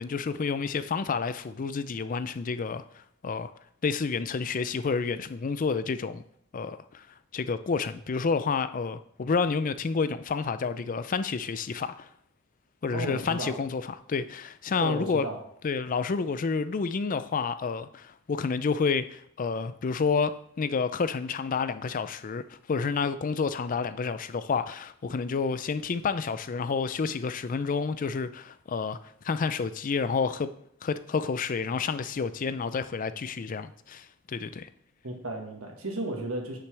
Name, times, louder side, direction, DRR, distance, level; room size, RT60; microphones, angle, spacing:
voice 1, 0.0-3.5 3.8-6.2 6.5-7.1 7.3-12.1 12.8-15.2 15.6-30.5 30.8-34.7, left 5 dB, 40° left, 0.4 m, -29 dB
voice 2, 12.9-13.5 14.8-15.4 35.0-36.6, right 2 dB, 75° right, 1.6 m, -34 dB
9.7 x 5.8 x 3.3 m
head